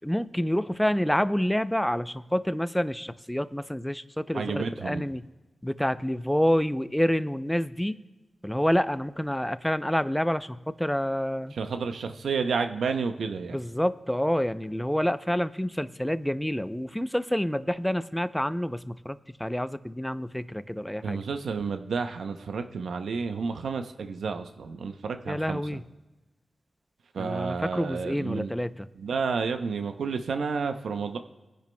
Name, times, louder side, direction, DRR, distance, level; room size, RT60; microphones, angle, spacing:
voice 1, 0.0-5.3 5.6-8.0 8.4-11.6 13.5-21.2 25.3-25.8 27.2-28.9, equal, 5° left, 13 dB, 0.5 m, -28 dB
voice 2, 4.3-5.0 11.5-13.6 21.0-25.8 27.1-28.5 29.0-31.2, right 5 dB, 90° right, 7 dB, 0.6 m, -31 dB
21.0 x 10.5 x 2.2 m, 1.1 s
cardioid pair, 60°, 0 cm